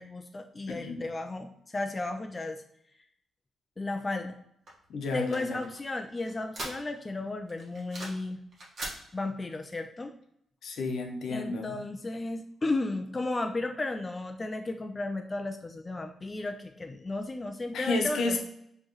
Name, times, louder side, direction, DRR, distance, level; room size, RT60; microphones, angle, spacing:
voice 1, 0.0-2.6 3.8-4.4 5.1-8.4 9.1-10.1 11.3-18.4, left 2 dB, 20° left, 6 dB, 0.3 m, -34 dB
voice 2, 0.7-1.0 4.9-5.6 10.6-11.8 17.7-18.4, left 3 dB, 75° left, 3 dB, 0.8 m, -31 dB
sound 1, 4.7-7.2 7.5-8.3 8.5-9.0, right 1 dB, 55° right, 1.5 m, -41 dB
4.4 x 3.0 x 3.0 m, 0.73 s
cardioid pair, 120°, 0 cm